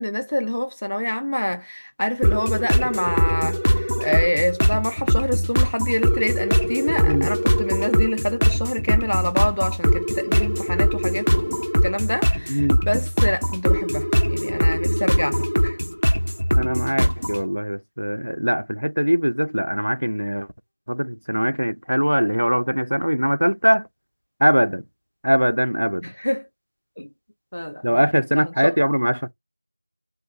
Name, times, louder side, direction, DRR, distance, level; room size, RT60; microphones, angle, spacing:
voice 1, 0.0-15.8 26.0-26.5 27.0-27.1 27.5-28.0 28.4-28.8, left 1 dB, 50° left, 0.4 m, -26 dB
sound 1, 2.2-17.4, equal, 80° left, 1.0 m, -21 dB
voice 2, 16.5-20.5 20.9-23.9 24.4-24.8 25.2-26.1 27.8-29.3, equal, 85° right, 0.3 m, -21 dB
2.6 x 2.3 x 3.1 m
figure-of-eight pair, 175°, 0 cm